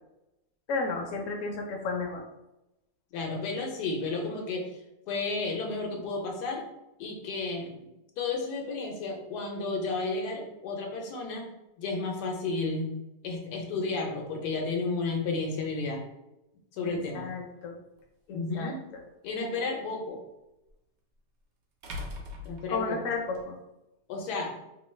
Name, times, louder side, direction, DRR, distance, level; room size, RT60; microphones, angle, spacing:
voice 1, 0.7-2.2 16.9-17.8 18.3-18.7 22.7-23.6, left 4 dB, 65° left, 2 dB, 0.9 m, -33 dB
voice 2, 3.1-4.7 5.1-6.6 7.0-7.9 8.2-11.5 11.8-12.9 13.2-16.0 16.7-17.4 18.3-18.8 19.2-20.2 22.4-23.0 24.1-24.6, left 3 dB, 85° left, 1 dB, 1.2 m, -32 dB
sound 1, 18.0-18.1 20.7-20.8 21.8-23.4, left 2 dB, 70° right, 1.0 m, -40 dB
3.0 x 2.2 x 3.1 m, 0.93 s
omnidirectional pair, 1.7 m